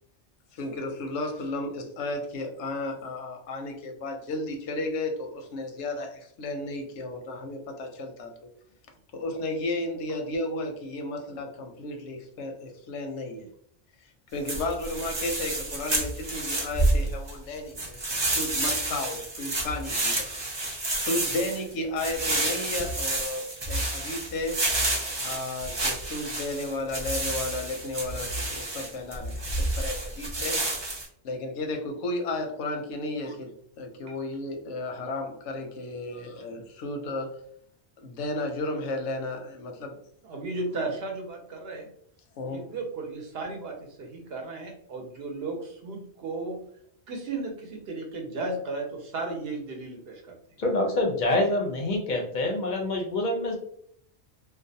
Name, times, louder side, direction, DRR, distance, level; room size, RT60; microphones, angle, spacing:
voice 1, 0.5-8.3 9.1-13.5 14.3-24.6 25.2-30.6 31.2-33.5 33.8-37.3 38.0-39.9 42.4-42.6, left 2 dB, 90° left, 4 dB, 0.9 m, -33 dB
sound 1, 14.5-17.3 17.8-31.1, right 2 dB, 35° right, 0.4 m, -29 dB
voice 2, 40.2-41.9 42.5-46.6 47.1-50.4, right 3 dB, 65° right, 2 dB, 0.8 m, -35 dB
voice 3, 50.6-53.6, left 1 dB, 55° left, 1 dB, 0.6 m, -26 dB
2.4 x 2.0 x 2.6 m, 0.66 s
omnidirectional pair, 1.1 m